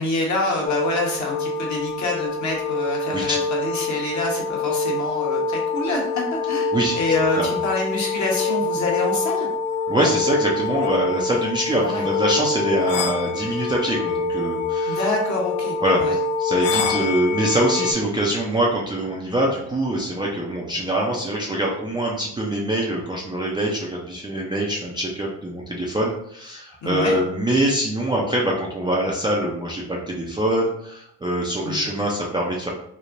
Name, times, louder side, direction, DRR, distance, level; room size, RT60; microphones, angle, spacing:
voice 1, 0.0-9.5 11.8-12.1 14.8-16.1 16.9-17.1 26.8-27.2 31.6-31.9, left 2 dB, 45° left, -1 dB, 1.1 m, -26 dB
sound 1, 0.7-17.9, left 4 dB, 65° left, 0.5 m, -25 dB
voice 2, 9.9-15.0 15.8-16.0 16.4-32.7, right 1 dB, 10° right, -4 dB, 0.4 m, -24 dB
3.2 x 2.1 x 2.5 m, 0.76 s
hypercardioid pair, 65°, 41 cm